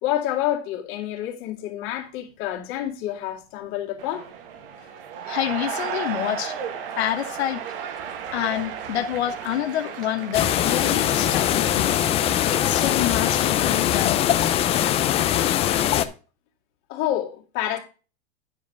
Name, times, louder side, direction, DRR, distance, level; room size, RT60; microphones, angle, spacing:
voice 1, 0.0-4.3 16.9-17.8, left 12 dB, 40° left, 2.2 m, -28 dB
sound 1, 4.0-14.0, right 7 dB, 60° right, 1.4 m, -35 dB
voice 2, 5.3-6.5 7.0-7.6 8.3-12.0 12.5-14.2, left 11 dB, 85° left, 1.1 m, -27 dB
sound 2, 10.3-16.1, left 11 dB, 20° left, 0.5 m, -21 dB
9.5 x 4.9 x 4.6 m
supercardioid pair, 150°, 32 cm